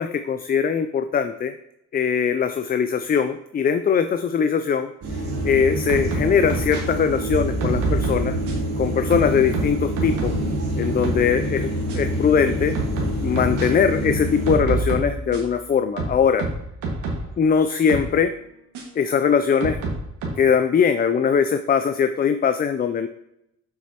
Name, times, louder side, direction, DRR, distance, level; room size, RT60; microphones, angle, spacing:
voice 1, 0.0-1.5 1.9-4.9 5.4-8.3 8.8-10.4 10.8-11.7 11.9-12.7 13.2-16.4 17.4-18.3 19.0-19.8 20.4-23.1, left 7 dB, 30° left, 9 dB, 0.4 m, -21 dB
sound 1, 5.0-14.6, right 1 dB, 65° right, 2.4 m, -26 dB
sound 2, 5.9-6.8 7.6-8.7 9.1-10.5 10.8-11.3 11.9-12.0 12.7-13.7 14.5-15.6 16.0-17.3 17.9-18.1 18.7-18.8 19.6-20.3, right 2 dB, 85° right, 1.9 m, -27 dB
7.0 x 6.1 x 2.9 m, 0.83 s
cardioid pair, 90°, 30 cm